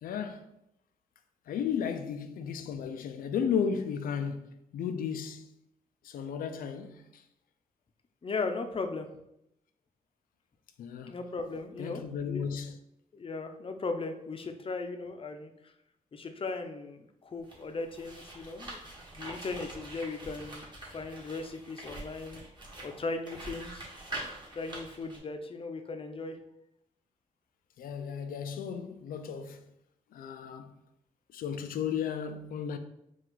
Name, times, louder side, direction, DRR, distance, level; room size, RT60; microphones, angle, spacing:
voice 1, 0.0-0.5 1.5-5.5 6.0-7.2 10.8-11.2 11.8-12.8 27.8-29.6 30.1-30.7 31.3-32.8, left 7 dB, 90° left, 0.4 m, -34 dB
voice 2, 8.2-9.1 11.1-12.5 13.1-15.7 16.1-18.8 19.1-22.4 22.8-23.9 24.5-26.4, left 3 dB, 40° left, 0.6 m, -37 dB
sound 1, 17.4-25.2, right 1 dB, 30° right, 1.5 m, -44 dB
4.4 x 2.4 x 3.8 m
cardioid pair, 70°, 14 cm